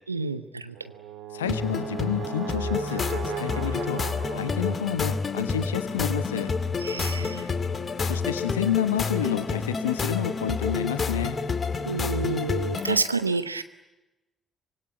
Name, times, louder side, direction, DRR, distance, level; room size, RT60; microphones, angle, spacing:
voice 1, 0.1-0.7 6.8-7.6 11.9-13.6, right 4 dB, 90° right, 12 dB, 0.8 m, -29 dB
Brass instrument, 0.7-5.0, right 9 dB, 65° right, 3.4 m, -37 dB
voice 2, 1.3-4.0 4.3-6.5 8.0-11.4, left 9 dB, 80° left, 11 dB, 1.2 m, -29 dB
sound 1, 1.4-13.0, left 4 dB, 40° left, 2.3 m, -29 dB
Singing, 5.4-12.7, right 1 dB, 15° right, 2.4 m, -46 dB
25.0 x 22.5 x 9.6 m, 1.0 s
figure-of-eight pair, 45°, 0 cm